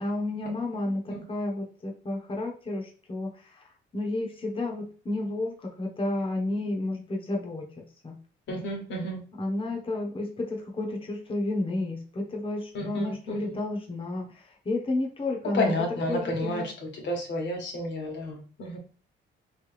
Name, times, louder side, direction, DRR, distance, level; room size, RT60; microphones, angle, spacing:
voice 1, 0.0-7.7 8.0-8.2 9.4-15.7 16.1-16.7, left 2 dB, 25° left, 0 dB, 1.1 m, -31 dB
voice 2, 8.5-9.2 12.7-13.5 15.5-18.8, left 1 dB, 65° left, 1 dB, 1.5 m, -31 dB
3.3 x 3.1 x 3.3 m, 0.38 s
cardioid pair, 90°, 20 cm